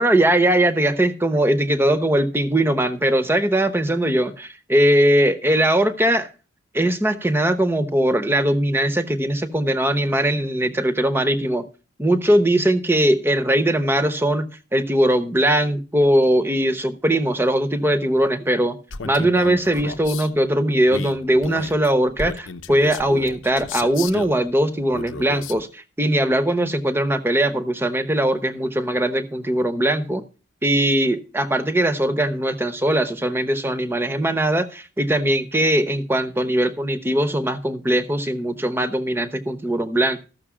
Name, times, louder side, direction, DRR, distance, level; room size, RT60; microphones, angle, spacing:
voice 1, 0.0-6.3 6.7-11.7 12.0-18.8 19.0-30.2 30.6-40.2, right 1 dB, 10° right, 0.9 m, -20 dB
Male speech man speaking, 18.9-20.3 20.9-24.4 24.9-25.6, left 4 dB, 65° left, 0.8 m, -33 dB
13.5 x 6.6 x 4.9 m
head